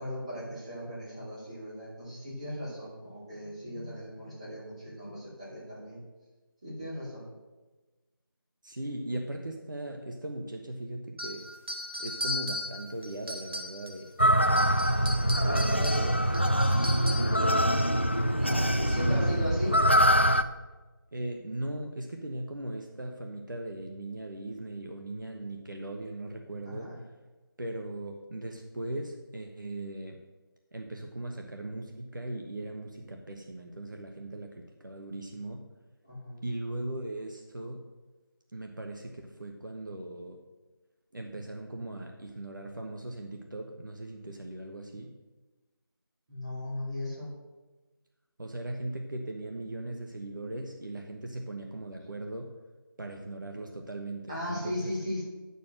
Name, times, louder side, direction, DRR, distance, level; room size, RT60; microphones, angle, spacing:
voice 1, 0.0-6.0 6.6-7.3 15.4-16.1 18.4-19.7 26.6-27.0 36.0-36.4 46.3-47.3 54.3-55.2, left 1 dB, 15° right, -8 dB, 2.5 m, -37 dB
voice 2, 8.6-11.4 12.0-14.1 15.4-16.5 17.1-17.8 18.5-19.4 21.1-26.9 27.6-30.2 30.7-35.6 36.4-37.8 38.5-40.4 41.1-45.1 48.4-52.5 53.0-54.9, right 1 dB, 60° right, 2 dB, 1.2 m, -38 dB
sound 1, 11.2-14.1 14.4-17.4, left 1 dB, 80° right, 2.1 m, -37 dB
sound 2, 14.2-20.4, equal, 30° left, 0.3 m, -24 dB
9.2 x 6.9 x 6.5 m, 1.2 s
figure-of-eight pair, 180°, 12 cm